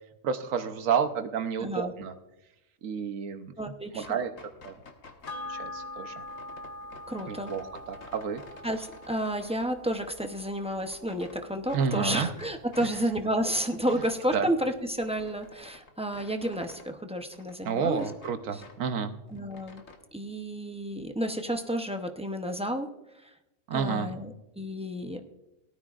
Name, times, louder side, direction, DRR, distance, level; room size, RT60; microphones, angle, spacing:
voice 1, 0.2-2.1 2.8-4.3 4.6-4.7 5.5-6.2 7.3-8.4 11.7-12.3 12.8-12.9 14.3-14.5 17.6-19.1 23.7-24.1, right 6 dB, 70° right, 8 dB, 1.2 m, -30 dB
voice 2, 1.6-1.9 3.6-4.2 7.1-7.5 8.6-18.1 18.5-18.6 19.3-19.8 20.1-22.9 23.2-23.3 23.7-25.2, equal, 10° right, 4 dB, 0.4 m, -31 dB
sound 1, 3.9-5.5 6.2-9.7 10.1-11.4 11.7-12.9 13.2-16.9 17.2-18.8 19.1-20.0, left 4 dB, 70° left, 1.6 m, -51 dB
sound 2, 5.3-14.0 14.4-14.5, left 2 dB, 85° left, 1.8 m, -45 dB
18.5 x 12.5 x 2.5 m, 0.94 s
omnidirectional pair, 1.4 m